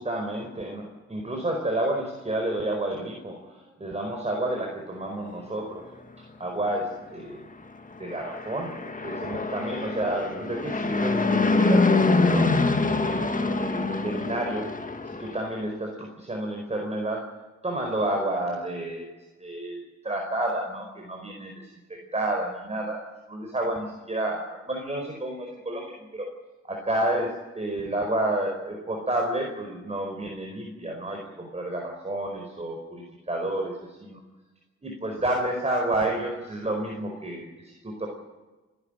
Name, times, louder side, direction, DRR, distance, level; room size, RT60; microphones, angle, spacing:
voice 1, 0.0-5.8 6.2-7.4 8.0-12.5 12.8-14.7 15.0-17.2 17.6-19.1 19.4-23.0 23.3-26.3 26.6-34.2 34.8-38.1, right 1 dB, 20° right, 1 dB, 4.9 m, -30 dB
Fixed-wing aircraft airplane, 8.1-15.5, left 3 dB, 25° left, 2.1 m, -25 dB
27.5 x 12.0 x 9.1 m, 1.2 s
cardioid pair, 85°, 29 cm